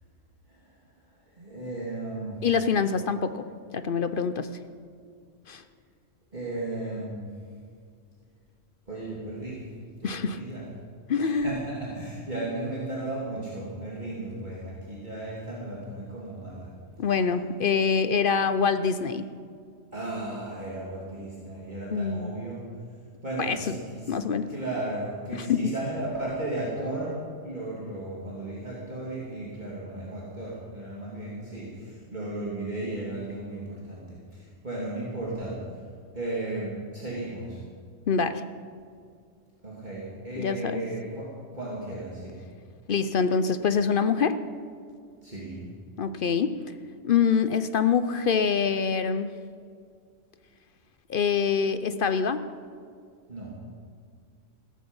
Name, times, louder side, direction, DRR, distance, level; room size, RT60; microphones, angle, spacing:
voice 1, 1.4-2.4 6.3-7.3 8.9-9.7 10.0-10.6 11.2-16.7 19.9-22.7 23.2-24.2 24.5-35.6 36.1-37.6 39.6-42.4 45.2-45.6 53.3-53.5, right 2 dB, 35° right, -6 dB, 2.8 m, -35 dB
voice 2, 2.4-4.5 5.5-5.6 10.0-10.4 11.1-11.6 17.0-19.3 21.9-22.3 23.4-23.7 24.1-24.5 25.3-25.7 38.1-38.4 40.3-40.8 42.9-44.5 46.0-46.6 47.0-49.4 51.1-52.5, left 6 dB, 55° left, 11 dB, 0.7 m, -25 dB
16.5 x 14.0 x 5.4 m, 2.2 s
omnidirectional pair, 1.3 m